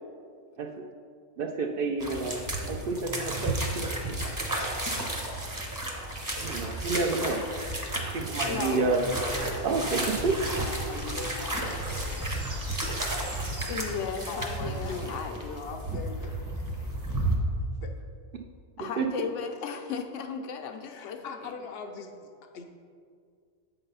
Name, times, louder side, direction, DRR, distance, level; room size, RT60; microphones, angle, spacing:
voice 1, 1.4-4.2 6.4-7.4 8.1-9.0 9.6-10.4 19.0-19.1, right 4 dB, 60° right, 3 dB, 0.6 m, -29 dB
sound 1, 2.0-17.4, right 1 dB, 20° right, 0.8 m, -32 dB
voice 2, 4.2-4.5 8.6-8.9 9.9-10.4 10.7-11.9 14.3-16.6 17.8-18.0 20.8-22.6, left 5 dB, 65° left, 6 dB, 0.7 m, -41 dB
voice 3, 8.4-8.8 13.7-15.4 18.8-21.5, left 6 dB, 80° left, 5 dB, 1.0 m, -35 dB
sound 2, 8.8-14.0, right 2 dB, 40° right, 1.1 m, -47 dB
sound 3, 9.3-15.6, left 2 dB, 15° left, 0.5 m, -45 dB
7.8 x 3.9 x 5.4 m, 2.1 s
omnidirectional pair, 1.2 m